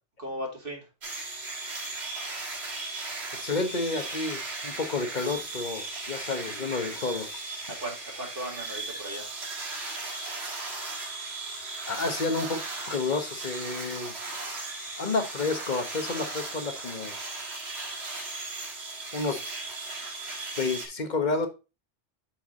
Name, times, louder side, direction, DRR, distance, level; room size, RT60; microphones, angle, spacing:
voice 1, 0.2-0.9 6.2-7.0 7.7-9.3, right 1 dB, 50° right, 0 dB, 2.5 m, -38 dB
sound 1, 1.0-20.9, right 3 dB, 70° right, 1.9 m, -37 dB
voice 2, 3.4-7.3 11.9-12.6 12.9-14.1 15.0-17.2 19.1-19.4 20.6-21.5, left 3 dB, 45° left, 7 dB, 1.1 m, -30 dB
7.4 x 4.7 x 3.6 m, 0.29 s
omnidirectional pair, 1.1 m